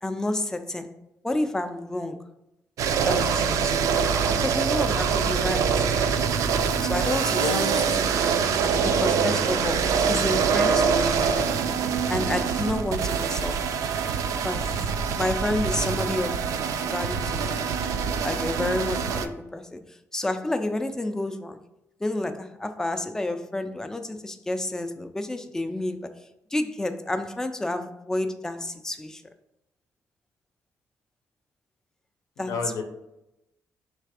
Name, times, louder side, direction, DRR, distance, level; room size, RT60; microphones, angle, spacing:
voice 1, 0.0-0.9 1.2-2.3 3.0-3.7 4.4-5.9 6.8-7.8 8.1-8.2 8.8-11.5 12.1-13.6 14.2-14.9 15.1-16.4 16.8-17.6 18.2-21.6 22.0-26.1 26.5-29.2 32.4-32.6, left 1 dB, 10° left, 0.3 m, -30 dB
sound 1, 2.8-19.3, right 6 dB, 75° right, 0.4 m, -24 dB
voice 2, 7.3-7.7 8.6-8.7 32.4-32.8, left 5 dB, 75° left, 0.6 m, -31 dB
3.3 x 3.2 x 4.8 m
cardioid pair, 155°, 6 cm